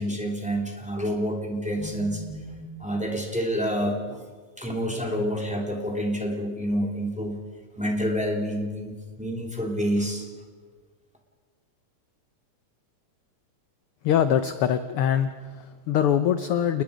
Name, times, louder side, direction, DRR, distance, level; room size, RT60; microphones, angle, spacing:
voice 1, 0.0-4.2 4.6-7.4 7.8-10.3, equal, ahead, 2 dB, 2.6 m, -28 dB
voice 2, 14.0-16.8, left 9 dB, 70° left, 11 dB, 1.3 m, -23 dB
29.5 x 20.5 x 5.1 m, 1.5 s
omnidirectional pair, 3.3 m